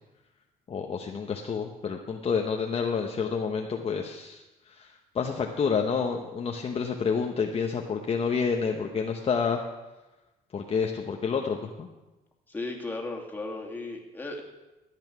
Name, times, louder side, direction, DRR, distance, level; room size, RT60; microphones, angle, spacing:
voice 1, 0.7-4.4 4.7-4.9 5.1-9.6 10.5-11.9, left 5 dB, 35° left, 2 dB, 1.0 m, -29 dB
voice 2, 12.5-14.4, left 2 dB, 10° left, -1 dB, 2.5 m, -35 dB
14.0 x 8.9 x 6.1 m, 1.1 s
cardioid pair, 110°, 17 cm